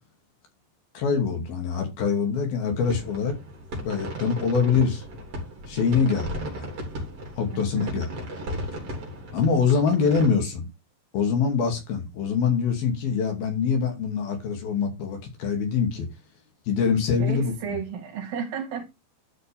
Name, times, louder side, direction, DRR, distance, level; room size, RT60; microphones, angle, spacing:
voice 1, 0.9-3.4 3.8-5.0 5.7-6.7 7.4-8.1 9.3-10.7 11.1-16.1 16.7-17.8, left 6 dB, 75° left, 4.4 m, -24 dB
sound 1, 2.8-10.3, equal, 40° right, 4.1 m, -36 dB
voice 2, 7.7-8.1 17.2-18.9, right 7 dB, 70° right, 3.8 m, -32 dB
12.5 x 6.1 x 3.5 m
omnidirectional pair, 4.4 m